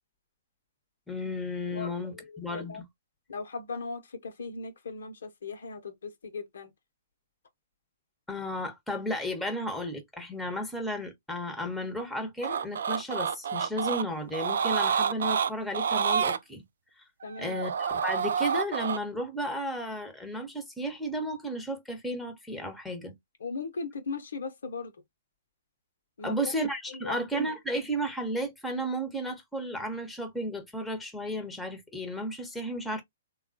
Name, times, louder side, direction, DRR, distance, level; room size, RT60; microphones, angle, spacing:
voice 1, 1.1-2.8 8.3-16.6 17.0-17.1 17.4-23.1 26.2-33.0, equal, 5° left, 0.9 m, -33 dB
voice 2, 1.7-2.8 3.3-6.7 17.2-17.6 23.4-24.9 26.2-26.5 26.9-27.2, left 4 dB, 65° left, 0.8 m, -38 dB
sound 1, 12.4-14.0 14.3-16.4 17.2-19.0, right 7 dB, 60° right, 0.3 m, -28 dB
3.6 x 2.3 x 2.5 m
figure-of-eight pair, 120°, 0 cm